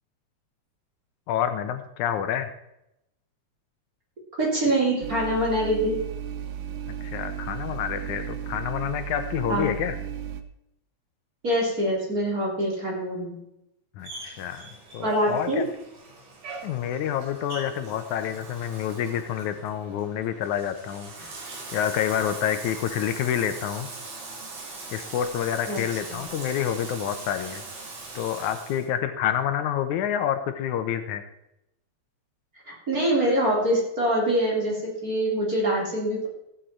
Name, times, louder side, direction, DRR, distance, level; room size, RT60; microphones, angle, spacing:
voice 1, 1.3-2.5 7.0-10.0 14.0-14.6 14.9-15.7 16.6-21.1 21.7-23.9 24.9-27.6 28.1-31.2, left 9 dB, 80° left, 8 dB, 2.2 m, -28 dB
voice 2, 4.4-6.0 9.5-9.7 11.4-13.4 15.0-15.6 25.7-25.8 26.1-26.2 32.7-36.3, right 1 dB, 30° right, -3 dB, 3.6 m, -24 dB
sound 1, 5.0-10.4, right 10 dB, 70° right, 1.5 m, -34 dB
Bathtub (filling or washing), 14.0-28.9, right 3 dB, 90° right, 4.3 m, -41 dB
15.5 x 8.3 x 4.4 m, 0.83 s
omnidirectional pair, 3.4 m